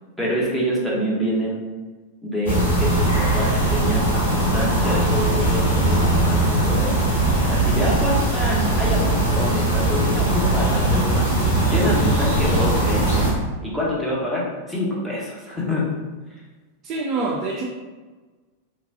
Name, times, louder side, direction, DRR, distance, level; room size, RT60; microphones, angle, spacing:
voice 1, 0.2-1.6 2.2-6.9 7.5-11.3 11.6-13.3 13.6-15.9, equal, ahead, -6 dB, 0.8 m, -26 dB
sound 1, 2.5-13.3, right 1 dB, 85° left, 1.0 m, -20 dB
voice 2, 16.8-17.6, right 3 dB, 35° right, -1 dB, 0.3 m, -25 dB
3.0 x 2.2 x 2.6 m, 1.3 s
figure-of-eight pair, 90°, 0 cm